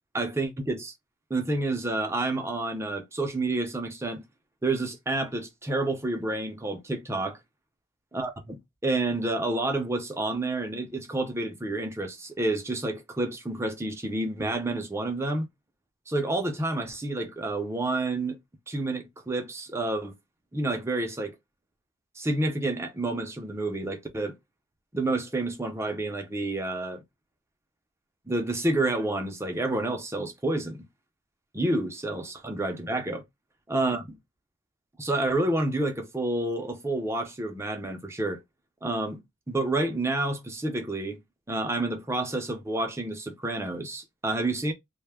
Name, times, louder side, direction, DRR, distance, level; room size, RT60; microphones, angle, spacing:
voice 1, 0.1-0.9 1.3-4.2 4.6-7.4 8.1-15.5 16.1-18.4 18.7-20.2 20.5-21.4 22.2-24.3 24.9-27.0 28.3-30.8 31.5-33.2 33.7-34.2 35.0-38.4 38.8-39.2 39.5-41.2 41.5-44.7, right 2 dB, 15° right, 0.5 m, -29 dB
2.2 x 2.1 x 3.3 m
head